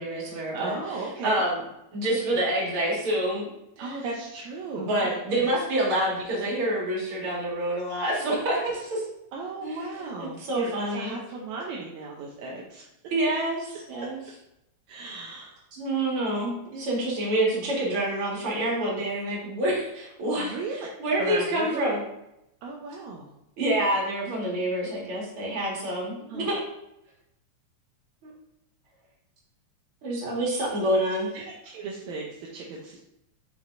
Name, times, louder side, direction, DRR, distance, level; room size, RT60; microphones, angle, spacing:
voice 1, 0.0-0.7 1.2-1.6 1.9-3.5 3.8-4.1 4.8-9.1 9.6-11.1 13.1-14.2 15.7-22.0 23.6-26.6 28.2-28.3 30.0-31.4, right 1 dB, 50° right, -4 dB, 2.7 m, -27 dB
voice 2, 0.5-1.4 3.8-5.5 9.3-12.8 14.0-14.1 14.9-15.6 16.7-16.9 20.4-20.9 21.2-22.0 22.6-23.3 26.3-26.5 31.3-33.0, right 3 dB, 75° right, -2 dB, 2.1 m, -36 dB
7.2 x 6.2 x 2.6 m, 0.85 s
omnidirectional pair, 3.4 m